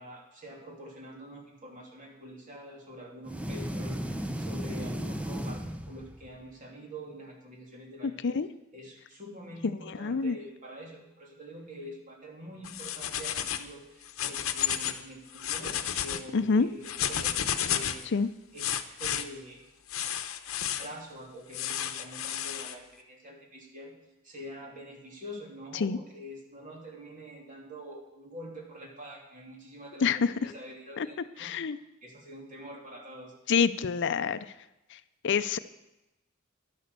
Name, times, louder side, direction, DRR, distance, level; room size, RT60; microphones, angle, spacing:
voice 1, 0.0-8.4 8.7-18.1 18.5-18.7 19.0-19.6 20.6-23.9 24.2-31.6 32.0-33.3, equal, 40° right, 0 dB, 3.0 m, -46 dB
sound 1, 3.3-6.4, equal, 5° right, 0.6 m, -35 dB
voice 2, 9.9-10.4 16.3-16.7 18.1-18.3 25.7-26.0 30.0-30.5 31.0-31.1 31.4-31.8 33.5-34.4 34.9-35.6, left 5 dB, 55° left, 13 dB, 0.5 m, -27 dB
sound 2, 12.6-13.7 14.0-15.0 15.3-16.2 16.8-18.1 18.6-19.2 19.9-20.9 21.5-22.7, left 10 dB, 80° left, 0.9 m, -32 dB
11.5 x 11.0 x 6.7 m, 0.94 s
head